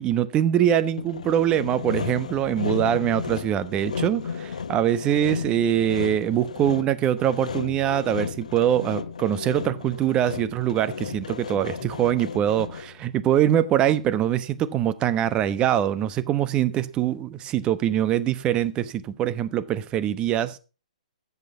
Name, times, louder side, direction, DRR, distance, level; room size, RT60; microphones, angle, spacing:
voice 1, 0.0-20.6, right 11 dB, 25° right, 1.0 m, -23 dB
Sawing, 1.0-13.0, left 6 dB, 75° left, 1.0 m, -34 dB
13.5 x 8.3 x 5.5 m
hypercardioid pair, 125°, 4 cm